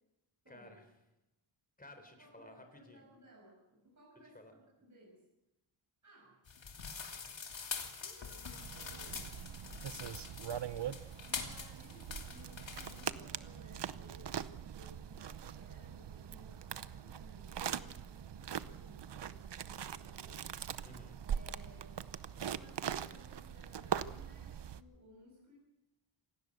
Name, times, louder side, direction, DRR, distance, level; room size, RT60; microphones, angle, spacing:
voice 1, 0.5-0.9 1.8-3.0 4.3-4.5 9.9-10.7 20.8-21.2, left 1 dB, 15° left, 6 dB, 4.1 m, -56 dB
voice 2, 2.2-5.2 6.0-6.4 8.0-9.3 11.2-20.9 21.2-22.0 22.3-25.6, right 1 dB, 35° right, -3 dB, 7.4 m, -60 dB
sound 1, 6.5-13.1, left 5 dB, 60° left, 3.0 m, -45 dB
sound 2, 8.6-24.8, right 8 dB, 55° right, 0.8 m, -42 dB
26.5 x 17.5 x 6.6 m, 0.95 s
wide cardioid pair, 130°, 50 cm